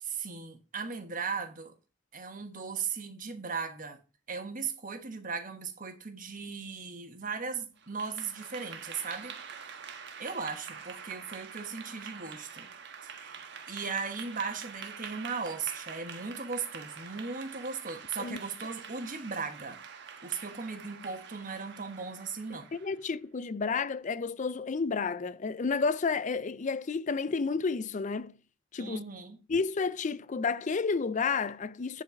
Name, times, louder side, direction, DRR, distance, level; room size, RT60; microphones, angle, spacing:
voice 1, 0.0-1.7 2.1-4.0 4.3-9.3 10.2-12.7 13.0-13.4 13.7-19.8 20.2-22.7 28.8-29.4, right 5 dB, 40° right, 1.4 m, -37 dB
Clapping / Applause, 7.8-23.0, right 6 dB, 60° right, 1.3 m, -46 dB
voice 2, 22.5-28.3 28.7-29.0 29.5-32.0, left 4 dB, 35° left, 0.4 m, -31 dB
10.5 x 4.6 x 5.8 m
head